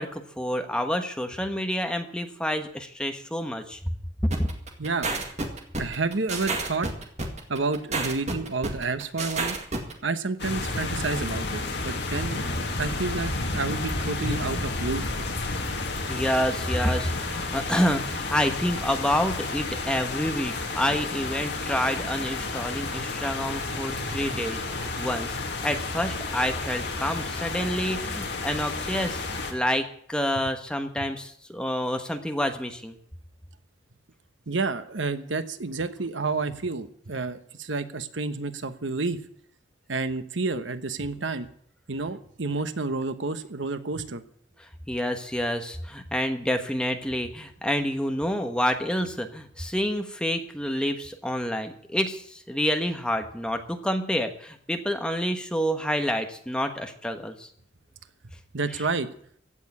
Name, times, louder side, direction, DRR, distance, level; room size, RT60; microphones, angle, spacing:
voice 1, 0.0-3.8 4.2-4.5 16.1-29.2 29.5-33.0 44.6-57.5, equal, 5° left, 5 dB, 1.2 m, -28 dB
sound 1, 4.3-9.9, right 3 dB, 40° right, 2.1 m, -30 dB
voice 2, 4.8-5.1 5.8-6.9 7.5-9.6 10.0-12.4 12.8-15.0 23.7-24.3 34.5-39.2 39.9-41.5 41.9-44.2 58.5-59.1, right 3 dB, 85° right, 11 dB, 1.1 m, -30 dB
sound 2, 10.4-29.5, left 3 dB, 65° left, 2.2 m, -31 dB
16.0 x 6.8 x 9.7 m, 0.63 s
head